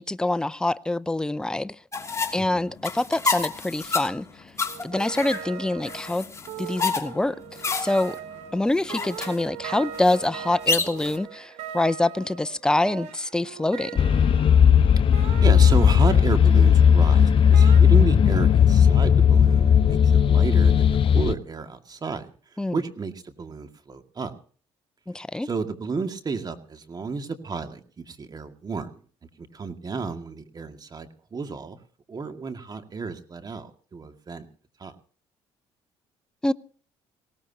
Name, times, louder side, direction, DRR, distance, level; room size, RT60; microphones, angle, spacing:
voice 1, 0.0-1.7 2.3-4.3 4.8-6.3 6.6-7.4 7.8-8.2 8.5-14.0 22.6-22.8 25.1-25.5 36.4-36.5, left 2 dB, 5° left, 0.6 m, -25 dB
sound 1, 1.9-11.2, left 4 dB, 25° left, 2.8 m, -30 dB
voice 2, 2.4-2.8 15.4-24.3 25.4-28.9 29.4-31.8 32.1-34.5 34.8-34.9, right 4 dB, 35° right, 2.2 m, -32 dB
sound 2, 4.7-14.6 15.1-16.5 17.5-17.8, right 9 dB, 80° right, 2.9 m, -40 dB
sound 3, 14.0-21.3, left 8 dB, 50° left, 0.9 m, -16 dB
19.5 x 17.5 x 2.9 m
supercardioid pair, 80°, 12 cm